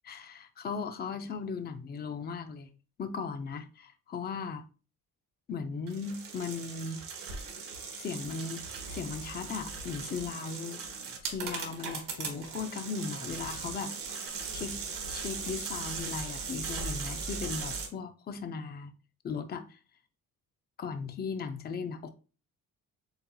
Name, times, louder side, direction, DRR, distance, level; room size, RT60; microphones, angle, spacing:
voice 1, 0.0-2.7 3.0-4.6 5.5-7.0 8.0-8.6 8.9-10.8 11.2-13.9 14.5-14.8 15.1-18.9 19.2-19.8 20.8-22.1, left 5 dB, 30° left, 0.5 m, -37 dB
sound 1, 5.9-17.9, right 5 dB, 70° right, 1.6 m, -39 dB
7.7 x 2.8 x 2.2 m
cardioid pair, 170°, 35 cm